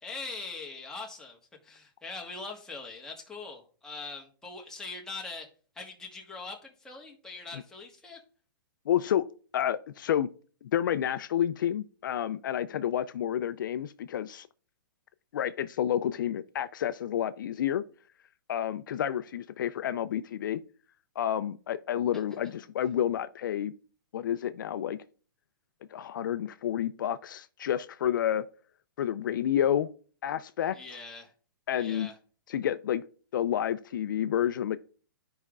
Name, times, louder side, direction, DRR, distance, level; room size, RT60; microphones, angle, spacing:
voice 1, 0.0-5.5 5.7-8.2 30.7-31.3 31.7-32.2, left 3 dB, 5° left, 1.2 m, -42 dB
voice 2, 8.9-9.3 9.5-10.3 10.6-14.5 15.3-17.8 18.5-20.6 21.2-23.7 24.1-25.0 25.9-28.5 29.0-29.9 30.2-30.8 31.7-32.1 32.5-33.0 33.3-34.8, left 10 dB, 65° left, 0.4 m, -29 dB
12.0 x 5.0 x 2.4 m
hypercardioid pair, 150°, 11 cm